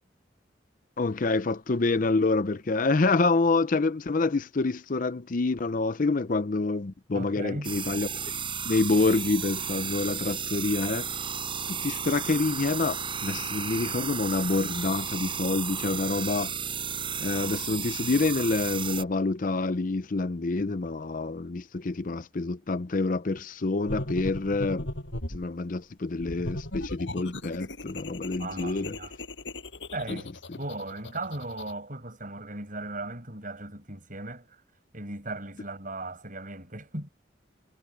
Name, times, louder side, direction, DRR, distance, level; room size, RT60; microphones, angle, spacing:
voice 1, 1.0-8.1 8.6-11.1 11.7-16.5 17.2-24.9 25.3-28.9 30.1-30.2, left 3 dB, 45° left, 0.6 m, -27 dB
voice 2, 7.1-7.7 28.4-29.1 29.9-30.3 30.6-34.6 34.9-37.1, right 2 dB, 45° right, 7.6 m, -37 dB
sound 1, 7.6-19.0, right 7 dB, 30° right, 7.2 m, -33 dB
sound 2, 23.9-25.5 26.2-31.7, left 1 dB, 75° left, 6.0 m, -37 dB
head